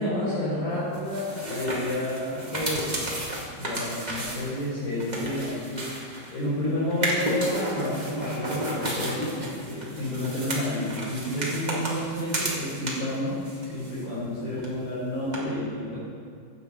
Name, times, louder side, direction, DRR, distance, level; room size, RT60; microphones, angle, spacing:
voice 1, 0.0-3.0 3.6-13.4 13.7-16.0, left 1 dB, 75° left, -10 dB, 5.9 m, -30 dB
sound 1, 0.9-6.4 6.9-13.2 13.4-14.3 14.6-14.7 15.3-15.4, right 1 dB, 25° right, 1.0 m, -33 dB
15.5 x 10.0 x 4.1 m, 2.2 s
omnidirectional pair, 4.3 m